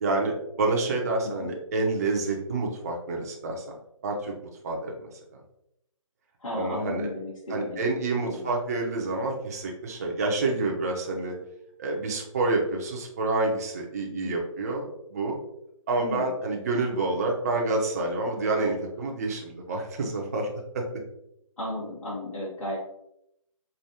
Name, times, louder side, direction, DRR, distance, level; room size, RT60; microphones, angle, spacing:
voice 1, 0.0-3.7 4.0-4.3 4.6-5.1 6.5-7.1 7.5-11.4 11.8-15.4 15.9-20.5 20.7-20.9, right 2 dB, 30° right, 0 dB, 0.6 m, -28 dB
voice 2, 6.4-7.8 8.2-8.5 10.4-10.5 14.1-14.4 16.0-16.3 21.6-22.8, left 2 dB, 80° left, -6 dB, 1.4 m, -35 dB
4.8 x 2.5 x 2.8 m, 0.79 s
hypercardioid pair, 160°, 17 cm